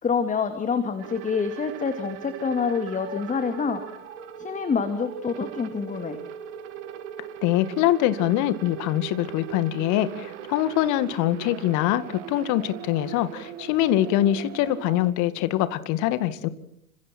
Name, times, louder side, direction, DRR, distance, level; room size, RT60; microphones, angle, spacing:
voice 1, 0.0-3.8 4.4-6.2, left 5 dB, 15° left, 8 dB, 2.4 m, -27 dB
sound 1, 1.0-15.1, right 10 dB, 55° right, 3.4 m, -39 dB
voice 2, 7.4-16.5, left 13 dB, 45° left, 13 dB, 2.1 m, -24 dB
29.5 x 26.0 x 4.5 m, 0.67 s
figure-of-eight pair, 95°, 43 cm